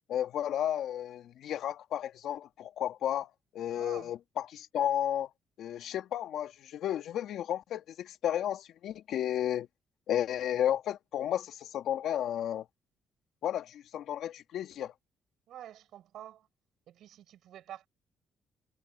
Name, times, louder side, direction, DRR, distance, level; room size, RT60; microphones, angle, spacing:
voice 1, 0.1-5.3 5.6-9.7 10.1-12.7 13.4-14.9, left 10 dB, 75° left, 2.4 m, -33 dB
voice 2, 3.7-4.1 15.5-16.5 16.9-17.9, right 11 dB, 75° right, 7.6 m, -48 dB
cardioid pair, 90°, 0 cm